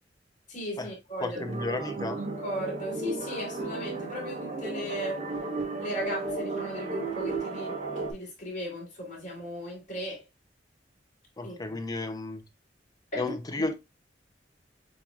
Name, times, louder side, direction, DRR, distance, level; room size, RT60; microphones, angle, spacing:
voice 1, 0.5-1.4 1.7-1.9 2.4-5.2 5.8-10.2 11.4-11.8 13.1-13.2, equal, 45° left, 3.2 m, -36 dB
voice 2, 1.2-2.2 11.4-12.4 13.1-13.7, left 2 dB, 20° left, 0.6 m, -33 dB
sound 1, 1.3-8.1, right 3 dB, 40° right, 1.1 m, -34 dB
7.2 x 3.0 x 2.4 m
head